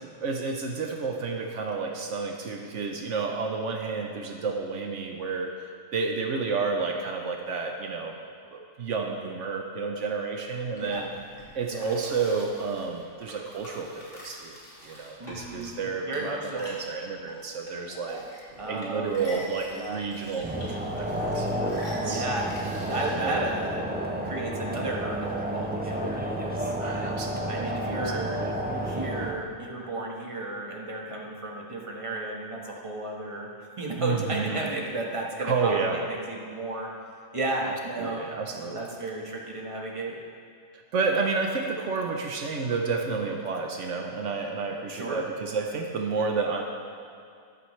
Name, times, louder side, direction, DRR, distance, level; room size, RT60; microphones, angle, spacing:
voice 1, 0.2-5.5 5.9-8.1 8.5-11.1 11.5-14.6 14.8-18.2 18.7-21.8 22.0-22.3 23.2-23.4 26.8-28.5 34.0-34.6 35.4-36.0 37.6-37.7 38.0-38.9 40.9-46.6, right 4 dB, 75° right, 2 dB, 1.2 m, -30 dB
sound 1, 10.7-23.3, equal, 90° left, 2.9 m, -45 dB
voice 2, 15.2-16.6 18.6-19.4 19.7-20.0 22.0-22.5 22.9-23.8 24.2-26.7 27.5-28.4 28.8-35.7 36.1-36.9 37.3-38.2 38.7-40.1 44.9-45.2, right 2 dB, 25° right, -2 dB, 1.5 m, -33 dB
sound 2, 20.4-29.3, right 1 dB, 10° right, 0.6 m, -31 dB
13.0 x 12.0 x 3.3 m, 2.4 s
omnidirectional pair, 1.3 m